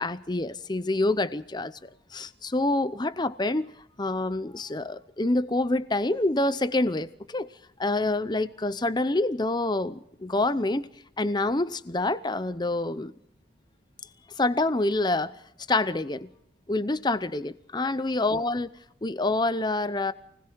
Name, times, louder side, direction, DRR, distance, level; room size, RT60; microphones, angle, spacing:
voice 1, 0.0-1.8 2.1-3.7 4.0-7.5 7.8-10.9 11.2-13.1 14.4-15.3 15.7-16.3 16.7-18.7 19.0-20.1, left 2 dB, 20° left, 0.7 m, -27 dB
29.0 x 20.0 x 4.7 m
head